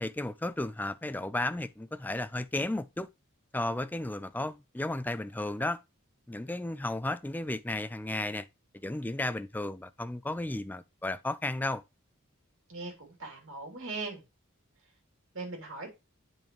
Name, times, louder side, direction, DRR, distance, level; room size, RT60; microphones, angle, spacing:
voice 1, 0.0-3.1 3.5-5.8 6.3-8.5 8.7-11.8, left 2 dB, 10° left, 0.3 m, -34 dB
voice 2, 12.7-14.2 15.3-15.9, right 3 dB, 65° right, 3.0 m, -39 dB
8.9 x 5.3 x 3.1 m
head